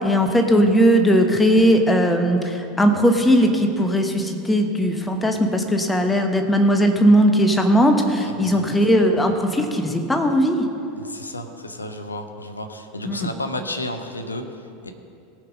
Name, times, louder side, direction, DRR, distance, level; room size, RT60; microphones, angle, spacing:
voice 1, 0.0-10.7 13.0-13.3, equal, 10° left, 5 dB, 1.2 m, -18 dB
voice 2, 8.2-8.6 10.9-14.9, left 1 dB, 80° left, 7 dB, 0.9 m, -32 dB
18.0 x 6.0 x 5.4 m, 2.6 s
figure-of-eight pair, 80°, 0 cm